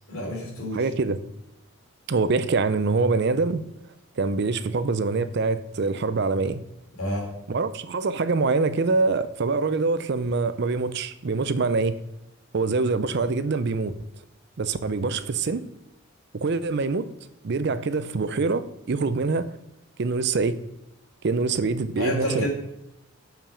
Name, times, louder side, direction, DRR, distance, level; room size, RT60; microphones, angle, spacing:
voice 1, 0.1-0.8 7.0-7.3 21.9-22.5, equal, 80° left, 3.2 m, -28 dB
voice 2, 0.7-1.2 2.1-3.6 4.2-6.6 7.5-12.0 12.5-13.9 14.6-15.6 16.3-17.1 17.4-19.5 20.0-20.6 21.2-22.5, right 4 dB, 50° right, 0.5 m, -24 dB
6.9 x 5.8 x 5.5 m
head